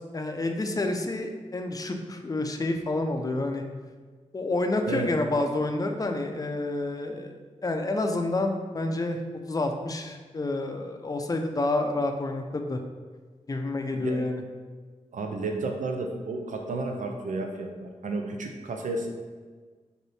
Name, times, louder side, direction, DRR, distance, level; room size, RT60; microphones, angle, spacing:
voice 1, 0.0-3.6 4.3-7.4 7.6-9.2 9.5-12.8 13.5-14.4, left 2 dB, 30° left, 5 dB, 0.5 m, -29 dB
voice 2, 15.1-19.1, right 3 dB, 80° right, 3 dB, 0.5 m, -32 dB
4.1 x 2.6 x 3.3 m, 1.5 s
cardioid pair, 50°, 13 cm